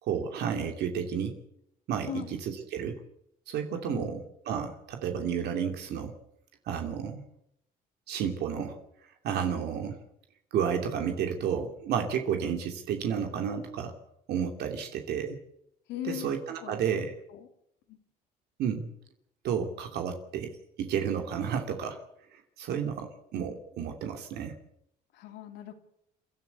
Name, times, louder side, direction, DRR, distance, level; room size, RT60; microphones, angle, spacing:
voice 1, 0.0-1.4 1.9-3.0 3.5-4.2 4.5-6.1 6.7-7.2 8.1-8.8 9.2-10.0 10.5-13.9 14.3-15.4 16.0-17.1 18.6-18.9 19.4-20.5 20.8-22.0 22.3-24.5, right 7 dB, 75° right, 4 dB, 2.7 m, -31 dB
voice 2, 3.9-4.2 15.9-16.3 16.6-16.9 17.3-17.5 17.9-18.0 25.1-25.7, left 12 dB, 80° left, 5 dB, 3.0 m, -39 dB
29.5 x 12.0 x 8.3 m, 0.78 s
cardioid pair, 110°, 17 cm